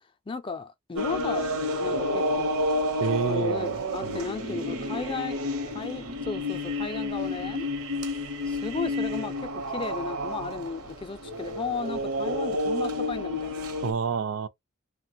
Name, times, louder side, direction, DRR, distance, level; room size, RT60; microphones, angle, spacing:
voice 1, 0.3-1.5 1.8-2.6 3.3-7.7 8.5-13.8, left 4 dB, 25° left, 0.4 m, -35 dB
sound 1, 0.9-13.9, left 1 dB, 80° right, 0.8 m, -30 dB
voice 2, 3.0-4.2 13.8-14.5, right 6 dB, 60° right, 0.4 m, -29 dB
3.2 x 2.1 x 2.7 m
head